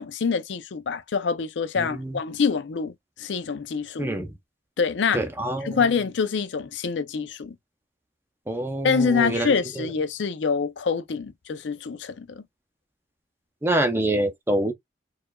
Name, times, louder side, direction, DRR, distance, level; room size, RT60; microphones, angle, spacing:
voice 1, 0.0-4.1 4.8-5.2 5.6-7.6 8.8-12.4, left 5 dB, 85° left, 0.5 m, -26 dB
voice 2, 1.8-2.2 4.0-4.3 5.1-5.8 8.5-9.9 13.6-14.7, right 1 dB, 15° right, 0.6 m, -26 dB
4.8 x 2.4 x 2.2 m
head